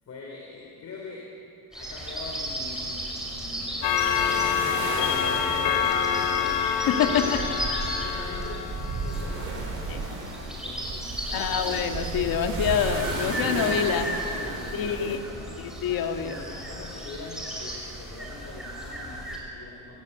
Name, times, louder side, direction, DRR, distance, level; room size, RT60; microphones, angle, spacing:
voice 1, 0.0-1.4 1.7-11.6 13.8-15.7 16.2-20.0, left 3 dB, 40° left, -1 dB, 4.2 m, -43 dB
sound 1, 1.7-19.4, right 1 dB, ahead, 5.9 m, -36 dB
Clock, 3.8-9.8, left 8 dB, 85° left, 2.3 m, -27 dB
sound 2, 3.8-15.2, right 3 dB, 30° right, 5.1 m, -34 dB
voice 2, 6.9-7.4 9.9-10.0 11.3-14.0 14.7-15.2 15.8-16.3, left 8 dB, 55° left, 5 dB, 1.9 m, -26 dB
24.5 x 17.0 x 8.4 m, 2.6 s
cardioid pair, 115°, 41 cm